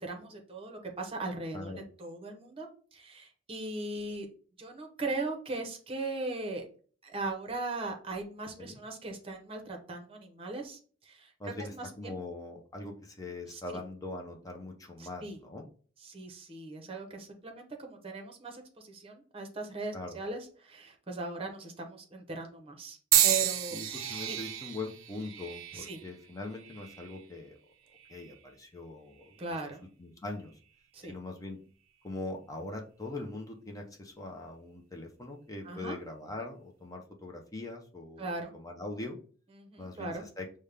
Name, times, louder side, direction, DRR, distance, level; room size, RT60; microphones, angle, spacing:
voice 1, 0.0-4.3 4.6-6.7 7.0-12.2 13.5-13.6 15.0-15.4 16.0-23.0 23.2-23.8 24.0-24.4 25.7-26.0 29.4-29.8 30.9-31.1 35.6-36.0 38.2-38.5 39.6-40.2, right 3 dB, 30° right, 4 dB, 0.8 m, -39 dB
voice 2, 11.4-15.7 19.9-20.2 23.7-27.6 28.1-29.4 30.0-30.5 31.0-31.6 32.0-39.2 39.8-40.5, left 2 dB, 15° left, 2 dB, 0.6 m, -42 dB
sound 1, 23.1-27.2 28.0-28.4 29.3-29.5, right 11 dB, 80° right, 0.4 m, -31 dB
5.2 x 2.2 x 3.3 m, 0.42 s
head